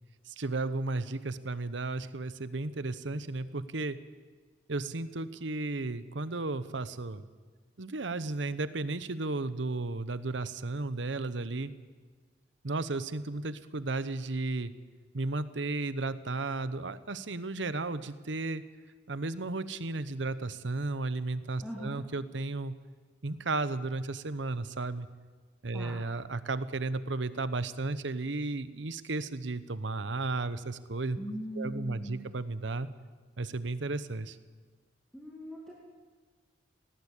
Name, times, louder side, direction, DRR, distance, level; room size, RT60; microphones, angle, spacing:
voice 1, 0.3-4.0 4.7-7.2 7.8-11.7 12.6-14.7 15.1-18.6 19.1-22.7 23.2-25.1 25.6-31.2 31.6-32.9 33.4-34.4, right 3 dB, 90° right, 13 dB, 1.0 m, -34 dB
voice 2, 21.6-22.1 25.7-26.0 31.2-32.2 35.1-35.7, equal, 5° left, -4 dB, 2.3 m, -40 dB
19.5 x 17.0 x 8.4 m, 1.4 s
head